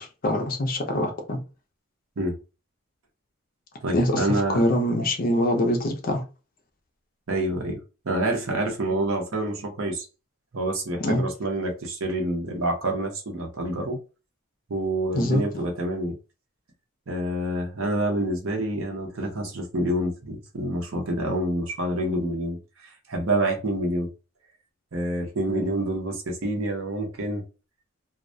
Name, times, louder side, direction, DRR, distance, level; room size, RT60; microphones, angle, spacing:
voice 1, 0.0-1.4 3.9-6.2 11.0-11.2 15.1-15.6, left 1 dB, 40° left, 0.5 m, -24 dB
voice 2, 3.8-4.6 7.3-10.1 10.5-14.0 14.7-16.1 17.1-24.1 24.9-27.4, right 1 dB, 70° right, 0.7 m, -27 dB
2.3 x 2.1 x 2.6 m
head